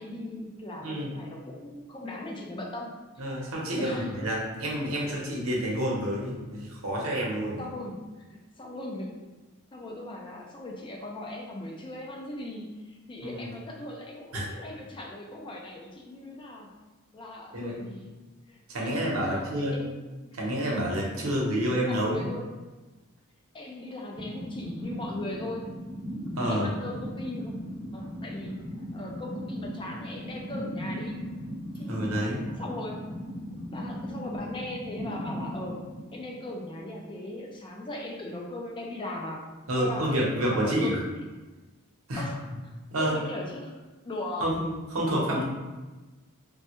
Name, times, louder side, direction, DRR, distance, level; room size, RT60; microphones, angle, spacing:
voice 1, 0.0-2.9 3.4-3.5 3.8-4.1 4.9-5.1 7.6-9.1 9.7-16.7 17.1-18.1 18.5-20.4 21.2-22.5 23.5-25.7 26.4-27.5 27.9-28.6 28.9-31.2 31.7-33.1 33.7-35.8 36.1-39.4 39.8-40.2 40.5-40.9 42.2-42.7 43.0-43.7 44.0-44.5, left 1 dB, 25° left, -1 dB, 0.4 m, -39 dB
voice 2, 0.8-1.1 3.2-7.6 13.2-13.5 14.3-14.4 17.5-17.8 18.7-19.8 20.3-22.2 26.4-26.7 31.9-32.4 39.7-41.0 42.1-42.3 42.9-43.1 44.4-45.4, equal, 85° right, -3 dB, 0.8 m, -28 dB
sound 1, 24.2-36.8, equal, 25° right, 0.6 m, -38 dB
3.1 x 2.2 x 2.9 m, 1.2 s
head